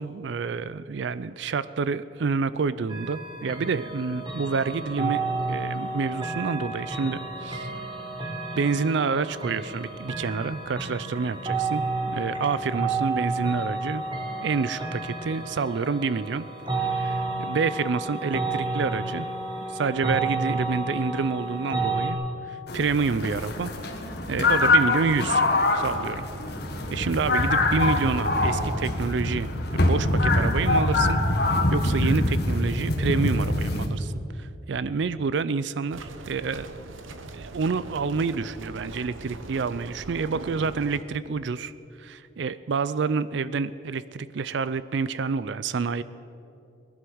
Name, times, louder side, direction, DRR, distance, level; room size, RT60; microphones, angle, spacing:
voice 1, 0.0-5.2 5.5-7.7 8.5-14.0 14.4-16.5 16.8-19.3 19.7-22.2 22.5-23.7 24.3-25.4 25.7-26.2 26.9-29.5 29.7-36.7 37.3-41.7 42.0-46.0, right 5 dB, 65° right, 15 dB, 0.4 m, -28 dB
sound 1, 2.9-22.1, right 3 dB, 25° right, 1.7 m, -31 dB
sound 2, 22.7-33.9, left 2 dB, 55° left, 1.7 m, -24 dB
sound 3, 35.9-41.0, right 2 dB, 90° right, 1.1 m, -41 dB
20.0 x 11.0 x 6.3 m, 2.8 s
head